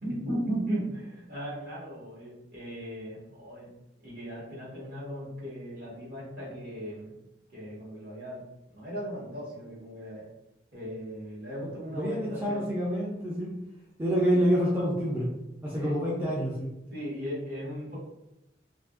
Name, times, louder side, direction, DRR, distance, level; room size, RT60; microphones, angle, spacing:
voice 1, 0.0-3.7 4.0-7.1 7.5-8.4 8.7-10.3 10.7-12.9 15.7-15.9 16.9-18.0, right 1 dB, 55° right, -7 dB, 1.3 m, -37 dB
voice 2, 11.9-13.5 14.0-15.3 15.6-16.7, equal, 10° right, -6 dB, 0.4 m, -27 dB
2.7 x 2.6 x 2.4 m, 0.94 s
head